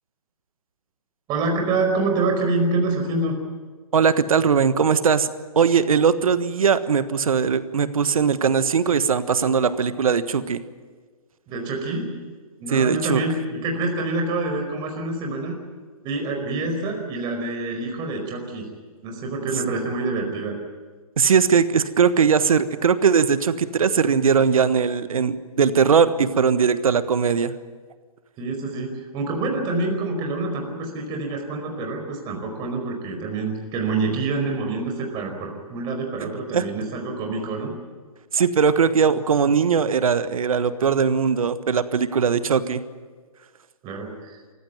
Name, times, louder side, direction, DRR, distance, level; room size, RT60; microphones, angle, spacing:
voice 1, 1.3-3.4 11.5-12.1 12.6-15.5 16.0-18.7 19.0-20.6 28.4-37.7 43.8-44.4, right 3 dB, 25° right, 3 dB, 4.9 m, -26 dB
voice 2, 3.9-5.3 5.5-10.6 12.7-13.2 21.2-27.5 36.2-36.6 38.3-42.8, right 6 dB, 70° right, 13 dB, 1.4 m, -20 dB
25.5 x 15.5 x 9.3 m, 1.5 s
hypercardioid pair, 140°, 19 cm